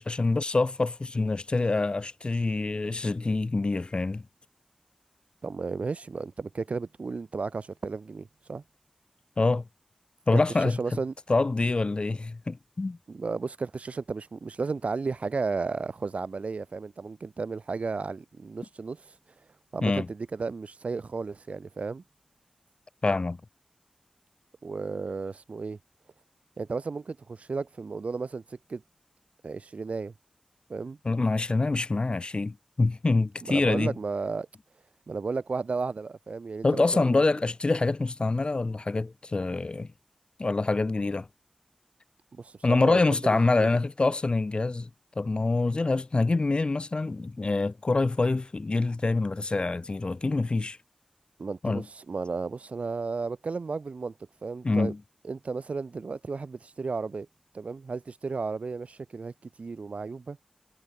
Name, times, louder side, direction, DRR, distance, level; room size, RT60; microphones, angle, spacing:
voice 1, 0.0-4.2 9.4-9.7 10.3-10.8 11.3-13.0 19.8-20.1 23.0-23.4 31.0-33.9 36.6-39.9 40.4-41.3 42.6-44.9 45.2-50.8 51.6-51.8 54.6-55.0, left 3 dB, 45° left, 4.4 m, -26 dB
voice 2, 5.4-8.6 10.3-11.1 13.1-19.1 19.7-22.0 24.6-25.8 26.6-28.8 29.4-30.1 30.7-31.0 33.5-34.5 35.1-37.2 42.3-43.7 51.4-54.1 54.4-54.9 55.2-57.3 57.5-60.4, right 4 dB, 70° right, 6.3 m, -33 dB
wide cardioid pair, 80°, 2 cm